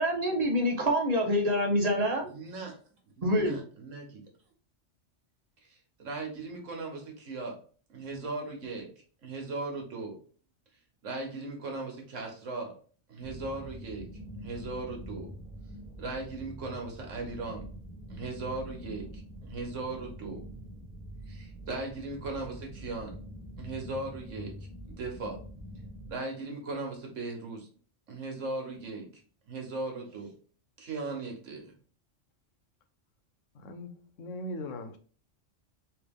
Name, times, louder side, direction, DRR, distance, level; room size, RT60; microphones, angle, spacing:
voice 1, 0.0-2.3 3.2-3.6, equal, 35° right, 0.9 m, -26 dB
voice 2, 2.3-2.8 3.2-4.2 5.6-7.6 7.9-8.9 9.2-10.2 11.0-12.7 13.1-14.1 14.4-15.3 16.0-17.7 18.1-20.4 21.3-23.2 23.6-24.7 25.0-25.4 26.1-27.7 28.1-29.2 29.5-30.3 30.8-31.7, right 3 dB, 85° right, 1.5 m, -38 dB
sound 1, 13.2-26.1, equal, 15° left, 0.8 m, -45 dB
voice 3, 33.5-35.0, left 1 dB, 85° left, 1.1 m, -40 dB
3.4 x 2.9 x 3.4 m
omnidirectional pair, 1.3 m